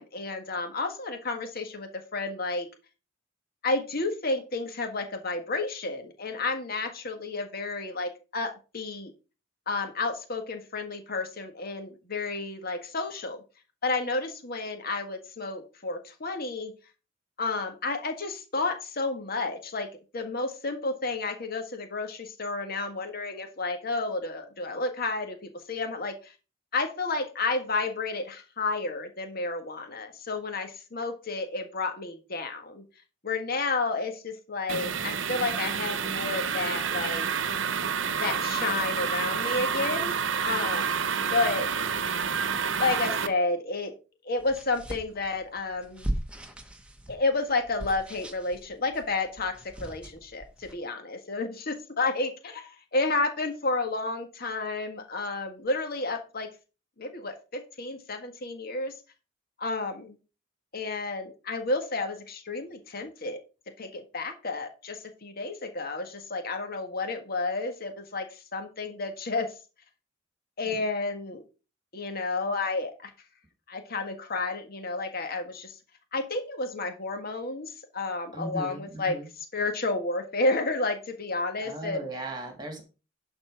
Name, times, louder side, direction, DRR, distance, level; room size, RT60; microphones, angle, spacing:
voice 1, 0.0-2.7 3.6-9.1 9.7-13.4 13.8-16.7 17.4-26.3 26.7-32.8 33.2-37.3 38.2-40.2 40.4-41.7 42.8-43.9 44.2-46.1 47.1-56.5 57.0-58.9 59.6-60.2 60.7-63.4 63.8-69.5 70.6-71.4 71.9-73.1 73.7-75.7 76.1-79.2 79.5-82.0, left 3 dB, 50° left, 5 dB, 1.6 m, -31 dB
sound 1, 34.7-43.3, right 6 dB, 70° right, 0.9 m, -29 dB
sound 2, 44.4-50.7, right 1 dB, 5° right, 1.3 m, -39 dB
voice 2, 78.3-79.3 81.6-82.8, right 2 dB, 25° right, 3 dB, 2.8 m, -37 dB
11.5 x 4.3 x 5.6 m, 0.32 s
head